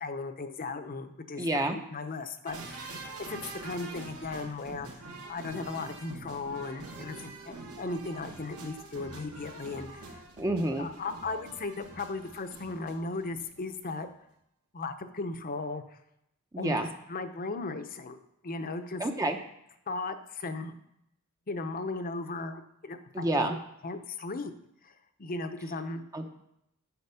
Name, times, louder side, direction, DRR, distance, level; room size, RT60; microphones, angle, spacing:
voice 1, 0.0-10.2 10.8-14.1 14.7-15.8 16.6-16.7 17.1-18.2 18.4-19.0 19.9-20.7 21.5-23.6 23.8-24.5 24.8-26.0, left 3 dB, 40° left, 9 dB, 0.8 m, -37 dB
voice 2, 1.4-1.8 10.4-10.9 16.5-16.9 19.0-19.4 23.1-23.6 26.1-26.2, right 1 dB, 15° right, 5 dB, 0.7 m, -28 dB
sound 1, 2.5-13.6 13.9-14.0, right 3 dB, 75° right, 2.2 m, -45 dB
9.7 x 6.5 x 5.7 m, 0.78 s
head